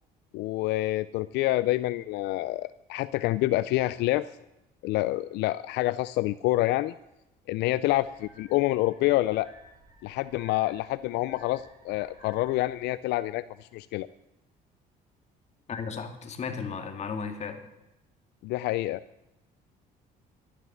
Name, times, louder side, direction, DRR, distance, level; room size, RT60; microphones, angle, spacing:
voice 1, 0.3-4.3 4.8-6.9 7.5-9.5 10.0-14.1 18.4-19.0, left 17 dB, 85° left, 15 dB, 0.4 m, -27 dB
sound 1, 7.9-12.9, right 1 dB, 25° right, 4.8 m, -56 dB
voice 2, 15.7-17.6, left 5 dB, 40° left, 5 dB, 2.3 m, -35 dB
12.0 x 11.5 x 7.3 m, 0.94 s
cardioid pair, 110°, 17 cm